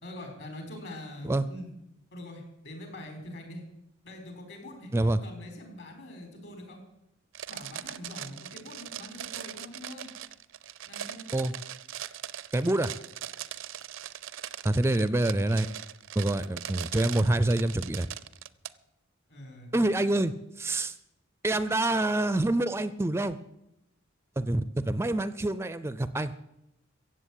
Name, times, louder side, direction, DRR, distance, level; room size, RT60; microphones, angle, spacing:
voice 1, 0.0-1.7 2.1-3.6 4.0-6.8 7.5-10.1 10.9-11.3 19.3-19.9, left 1 dB, 60° left, 4 dB, 4.4 m, -44 dB
sound 1, 7.3-18.7, right 10 dB, 70° right, 0.6 m, -40 dB
voice 2, 12.5-12.9 14.6-15.7 16.2-18.1 19.7-21.0 21.4-23.4 24.4-26.3, right 1 dB, 15° right, 14 dB, 0.4 m, -26 dB
15.0 x 8.0 x 8.4 m, 0.86 s
head